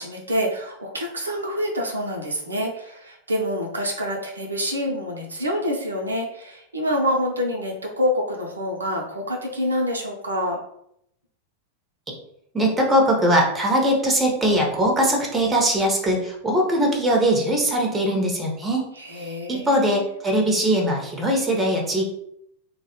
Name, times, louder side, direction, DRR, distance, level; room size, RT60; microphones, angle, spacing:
voice 1, 0.0-10.6 19.0-20.1, equal, 75° right, 1 dB, 0.4 m, -27 dB
voice 2, 12.5-18.8 19.1-22.0, equal, 15° right, 1 dB, 0.6 m, -21 dB
2.2 x 2.0 x 2.8 m, 0.74 s
figure-of-eight pair, 90°, 0 cm